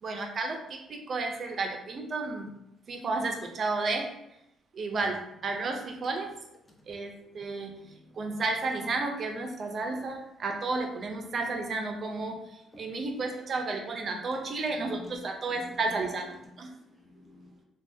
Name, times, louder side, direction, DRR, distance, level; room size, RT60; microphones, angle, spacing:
voice 1, 0.0-2.5 2.9-4.2 4.7-6.3 6.9-7.8 8.1-16.7, right 3 dB, 50° right, 4 dB, 0.5 m, -32 dB
voice 2, 7.2-8.4 9.9-10.0 12.7-13.0 14.1-16.0 16.3-17.6, left 1 dB, 25° left, -2 dB, 0.9 m, -52 dB
3.1 x 2.3 x 2.7 m, 0.82 s
cardioid pair, 90°, 0 cm